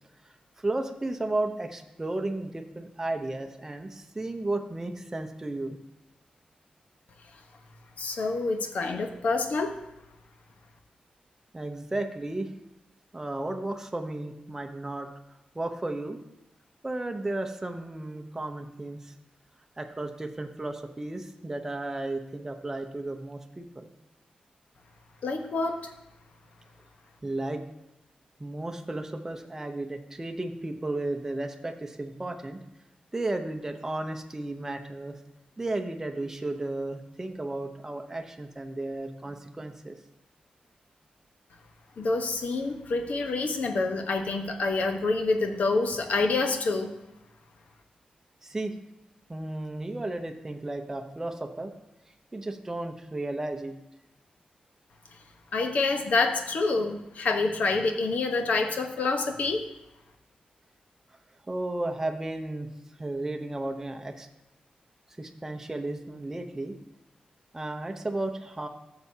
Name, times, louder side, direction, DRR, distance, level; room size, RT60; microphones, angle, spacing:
voice 1, 0.2-5.8 11.5-12.5 13.1-15.1 15.5-16.2 16.8-19.1 19.8-23.9 27.2-27.6 28.4-32.6 33.1-35.2 35.6-40.0 48.4-48.7 49.3-51.7 52.3-53.7 61.5-62.7 63.0-64.3 65.2-66.8 67.5-68.7, right 2 dB, 15° right, 4 dB, 0.7 m, -34 dB
voice 2, 8.0-9.7 25.2-25.9 42.0-46.9 55.5-59.7, left 3 dB, 65° left, 5 dB, 1.0 m, -27 dB
14.0 x 6.8 x 2.8 m, 0.92 s
wide cardioid pair, 140°, 3 cm